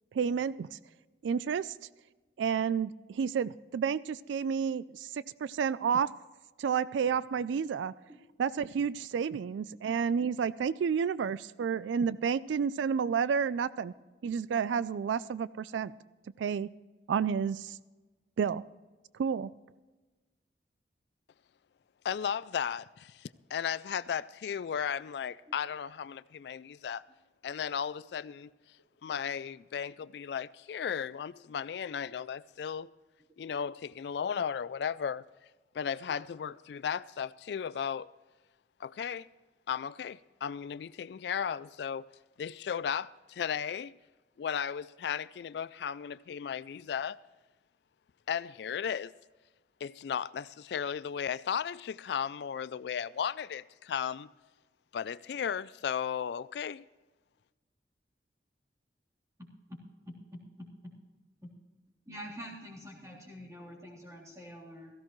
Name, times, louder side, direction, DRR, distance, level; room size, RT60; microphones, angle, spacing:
voice 1, 0.1-0.8 1.2-1.8 2.4-6.1 6.6-7.9 8.4-13.9 14.2-15.9 16.4-16.7 17.1-17.8 18.4-18.6 19.2-19.5, right 7 dB, 90° right, 0.3 m, -30 dB
voice 2, 22.0-27.0 27.4-28.5 29.0-32.9 33.4-35.3 35.7-38.1 38.8-39.3 39.7-42.0 42.4-43.9 44.4-47.2 48.3-49.1 49.8-54.3 54.9-56.8, left 7 dB, 65° left, 0.3 m, -35 dB
voice 3, 60.0-60.4 61.4-61.5 62.1-64.9, equal, 15° right, 3.4 m, -46 dB
17.0 x 15.0 x 3.1 m
head